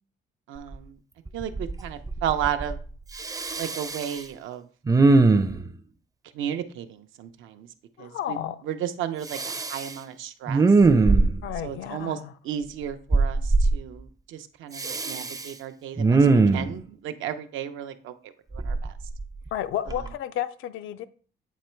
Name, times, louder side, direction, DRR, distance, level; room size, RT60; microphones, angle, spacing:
voice 1, 0.5-1.0 1.3-2.8 3.6-4.7 6.3-7.7 8.0-8.4 8.6-10.8 11.6-19.0 19.9-20.0, right 9 dB, 85° right, 0.7 m, -34 dB
Respiratory sounds, 0.7-0.8 1.3-1.8 2.1-2.8 3.2-4.2 4.9-5.7 9.3-9.9 10.5-11.5 13.1-13.7 14.8-15.5 16.0-16.7 18.5-19.5 19.9-20.1, right 3 dB, 20° right, 0.4 m, -21 dB
voice 2, 8.0-8.6 11.4-12.3 19.5-21.1, left 11 dB, 80° left, 0.5 m, -32 dB
8.3 x 3.0 x 4.4 m
cardioid pair, 90°, 20 cm